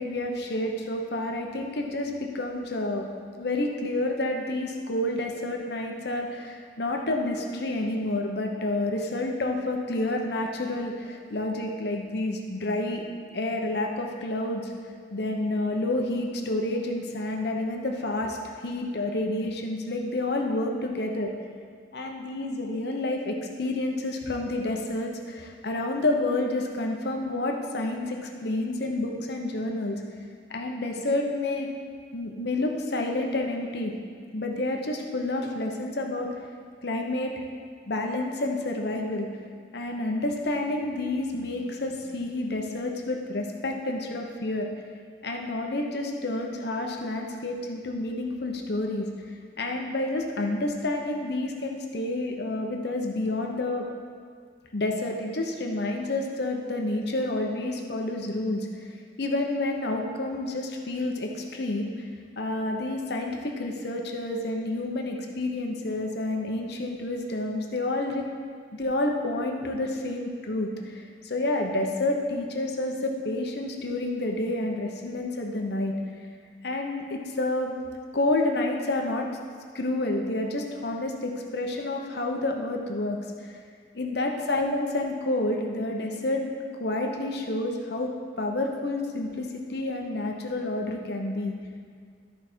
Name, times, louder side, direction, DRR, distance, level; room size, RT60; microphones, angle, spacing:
voice 1, 0.0-3.1 3.4-13.0 13.3-14.7 15.1-21.3 21.9-30.0 30.5-31.7 32.1-33.9 34.3-36.3 36.8-37.3 37.9-39.3 39.7-44.7 45.2-49.1 49.6-53.8 54.7-58.7 59.2-62.1 62.4-68.2 68.8-75.9 76.6-77.7 78.1-79.2 79.7-83.5 83.9-86.4 86.8-88.1 88.4-91.5, left 2 dB, 60° left, 1 dB, 1.0 m, -29 dB
13.5 x 4.9 x 4.6 m, 2.1 s
head